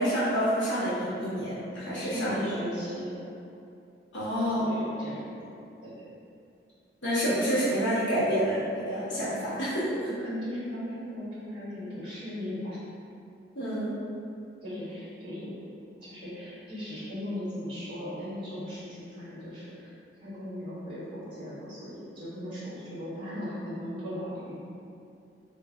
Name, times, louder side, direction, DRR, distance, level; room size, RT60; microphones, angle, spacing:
voice 1, 0.0-2.7 4.1-4.8 7.0-10.0 13.5-14.0, equal, 80° left, -11 dB, 1.0 m, -28 dB
voice 2, 2.0-3.1 4.5-5.3 5.8-5.9 9.1-9.2 10.0-12.8 14.6-15.5 16.0-19.9 20.2-24.6, left 1 dB, 25° right, -11 dB, 1.4 m, -37 dB
3.2 x 2.5 x 3.4 m, 2.6 s
head